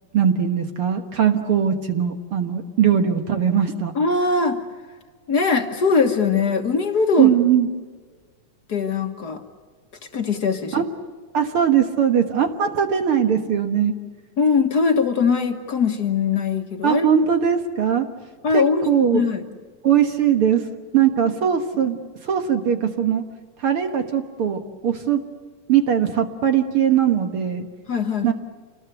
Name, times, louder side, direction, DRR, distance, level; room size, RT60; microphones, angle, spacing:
voice 1, 0.1-3.9 7.2-7.7 10.7-10.8 11.3-13.9 16.8-18.0 18.5-19.2 19.8-20.6 20.9-23.2 23.6-25.2 25.7-27.7 28.2-28.3, right 8 dB, 55° right, 6 dB, 1.8 m, -20 dB
voice 2, 3.9-4.6 5.3-7.3 8.7-9.4 10.1-10.8 14.4-17.1 18.4-19.4 27.9-28.3, left 5 dB, 45° left, 5 dB, 1.3 m, -21 dB
28.5 x 20.0 x 8.1 m, 1.5 s
omnidirectional pair, 3.6 m